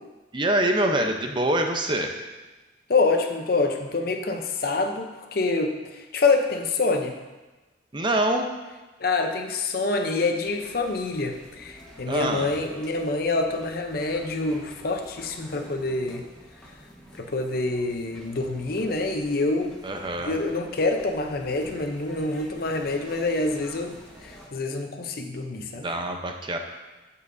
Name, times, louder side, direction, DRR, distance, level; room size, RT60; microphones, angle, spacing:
voice 1, 0.3-2.3 7.9-8.5 12.1-12.5 19.8-20.4 25.6-26.6, right 1 dB, 25° right, 4 dB, 0.7 m, -25 dB
voice 2, 2.9-7.1 9.0-16.3 17.2-19.8 20.2-25.9, left 3 dB, 55° left, 4 dB, 0.7 m, -26 dB
sound 1, 10.4-24.5, equal, 5° left, 1.3 m, -49 dB
14.0 x 5.6 x 2.7 m, 1.2 s
head